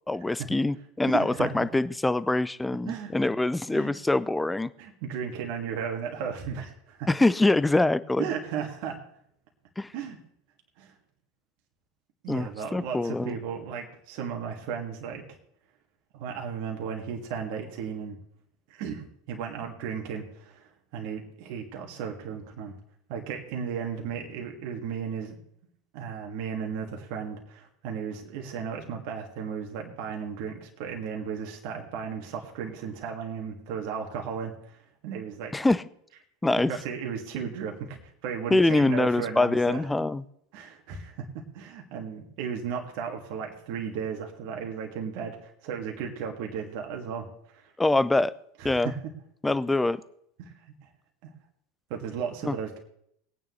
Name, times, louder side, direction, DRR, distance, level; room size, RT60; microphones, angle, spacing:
voice 1, 0.1-4.7 7.1-8.3 9.8-9.9 12.3-13.3 35.5-35.8 36.4-36.7 38.5-40.2 47.8-48.3 48.6-48.9 49.4-50.0 52.5-52.6, left 2 dB, 10° left, 16 dB, 0.5 m, -24 dB
voice 2, 1.1-1.7 2.9-3.1 3.7-3.9 4.8-7.1 8.2-9.0 9.9-10.2 10.8-10.9 12.2-15.4 16.1-18.2 18.7-22.7 23.1-25.4 25.9-35.5 36.7-39.9 40.5-41.3 41.5-47.3 47.5-47.7 48.6-49.0 49.7-49.8 50.4-50.5 50.8-50.9 51.2-51.3 51.9-52.8, right 7 dB, 55° right, 1 dB, 2.0 m, -35 dB
20.0 x 9.2 x 3.2 m, 0.70 s
figure-of-eight pair, 80°, 0 cm